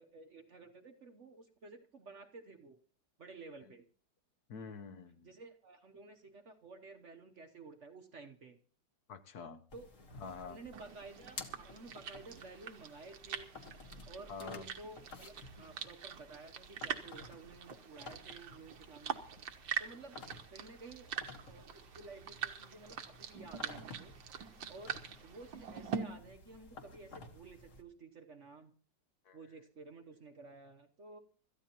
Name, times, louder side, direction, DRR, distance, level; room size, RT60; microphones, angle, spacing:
voice 1, 0.0-2.8 3.2-3.9 5.2-8.6 9.7-9.9 10.4-13.5 14.1-19.2 19.8-20.2 20.5-21.1 21.5-24.1 24.7-28.7 29.3-31.2, right 3 dB, 50° right, 6 dB, 1.1 m, -53 dB
voice 2, 4.5-5.3 9.1-9.6 10.2-10.6 14.3-14.7 29.2-29.4, left 5 dB, 60° left, 10 dB, 1.3 m, -47 dB
sound 1, 9.7-27.8, left 3 dB, 45° left, 1.8 m, -54 dB
sound 2, 10.7-26.0, right 8 dB, 85° right, 1.9 m, -44 dB
26.5 x 14.0 x 3.0 m, 0.41 s
omnidirectional pair, 2.0 m